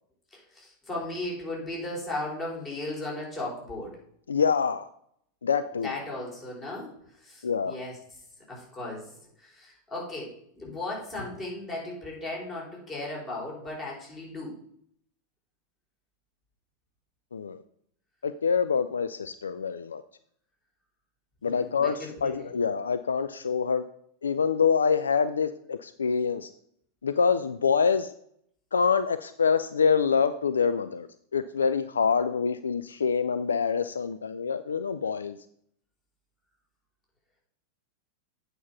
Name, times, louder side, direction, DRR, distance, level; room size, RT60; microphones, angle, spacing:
voice 1, 0.3-4.0 5.8-6.9 7.2-8.0 8.5-14.6 21.4-22.5, left 2 dB, 20° left, -3 dB, 4.3 m, -36 dB
voice 2, 4.3-4.9 5.4-5.9 7.4-7.8 17.3-17.6 18.2-20.0 21.4-23.8 24.2-26.5 27.0-28.1 28.7-31.1 31.3-35.4, left 6 dB, 70° left, 12 dB, 0.3 m, -26 dB
8.5 x 5.2 x 5.8 m, 0.68 s
figure-of-eight pair, 90°, 0 cm